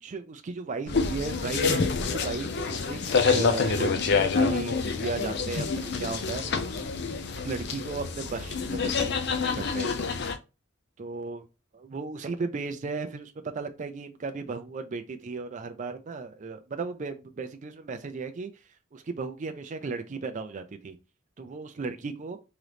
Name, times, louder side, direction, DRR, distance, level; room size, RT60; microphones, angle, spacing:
voice 1, 0.0-6.7 7.3-9.9 11.0-11.4 11.7-18.5 18.9-21.0 21.4-22.4, right 4 dB, 35° right, 0.4 m, -35 dB
sound 1, 0.9-10.4, left 5 dB, 55° left, 0.5 m, -27 dB
3.8 x 2.9 x 3.3 m
head